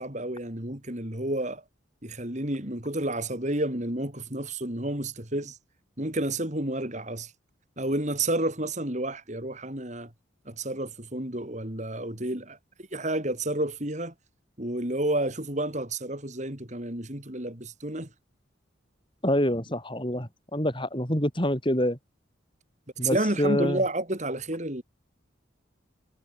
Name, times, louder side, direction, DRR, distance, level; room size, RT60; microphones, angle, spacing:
voice 1, 0.0-1.6 2.0-5.6 6.0-7.3 7.8-10.1 10.5-12.6 12.9-14.1 14.6-18.1 23.0-24.8, right 1 dB, 35° right, 4.1 m, -30 dB
voice 2, 19.2-22.0 23.0-23.8, equal, 25° left, 6.2 m, -26 dB
head